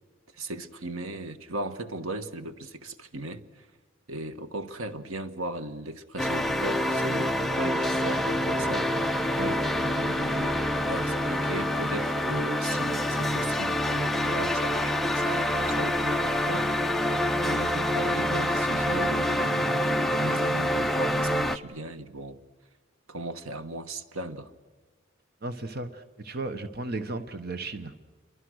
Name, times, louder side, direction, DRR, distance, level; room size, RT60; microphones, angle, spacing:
voice 1, 0.3-3.7 4.1-8.9 9.8-10.5 10.9-16.7 17.4-22.4 23.1-24.5, right 2 dB, 85° right, 10 dB, 1.5 m, -37 dB
sound 1, 6.2-21.6, left 1 dB, ahead, 0.7 m, -26 dB
voice 2, 25.4-27.9, right 2 dB, 50° right, 9 dB, 1.1 m, -35 dB
29.5 x 24.0 x 6.4 m, 1.4 s
head